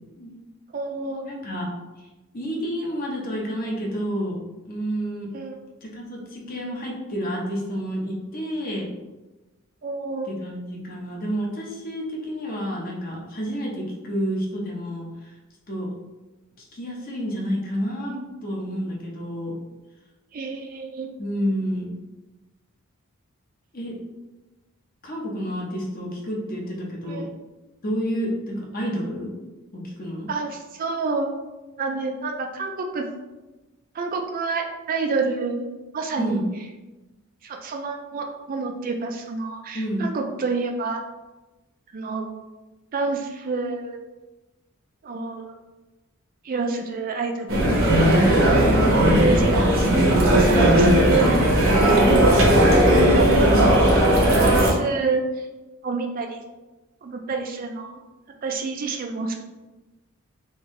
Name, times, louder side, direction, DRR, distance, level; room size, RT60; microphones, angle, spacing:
voice 1, 0.7-1.2 5.3-5.6 9.8-10.3 18.1-18.3 20.3-21.1 27.1-27.3 30.3-31.3 31.8-33.0 33.9-35.7 35.9-36.4 37.4-41.0 41.9-42.3 42.9-44.0 45.0-45.5 46.4-48.0 49.1-51.6 51.9-52.3 53.0-53.3 54.4-55.5 55.8-56.4 57.0-58.0 58.4-59.4, right 3 dB, 40° right, 3 dB, 0.3 m, -28 dB
voice 2, 1.2-1.7 2.3-4.4 4.7-5.3 5.8-8.9 10.2-15.3 15.7-15.9 16.6-18.1 18.4-19.5 21.2-21.9 23.7-24.0 25.0-27.2 27.8-29.3 29.7-30.3 36.2-36.4 39.7-40.0 48.6-49.3 52.9-53.8, equal, 40° left, -2 dB, 0.8 m, -29 dB
sound 1, 47.5-54.7, right 1 dB, 65° right, 0.9 m, -17 dB
3.5 x 2.7 x 3.1 m, 1.1 s
head